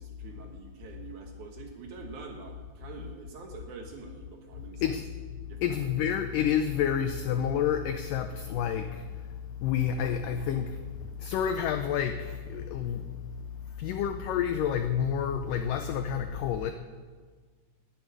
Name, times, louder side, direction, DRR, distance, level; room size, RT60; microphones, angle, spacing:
voice 1, 0.0-5.0 5.5-6.0, right 5 dB, 65° right, 2 dB, 2.2 m, -46 dB
voice 2, 5.6-13.5 13.8-16.7, left 8 dB, 85° left, 8 dB, 1.9 m, -29 dB
10.5 x 9.6 x 9.5 m, 1.5 s
omnidirectional pair, 4.6 m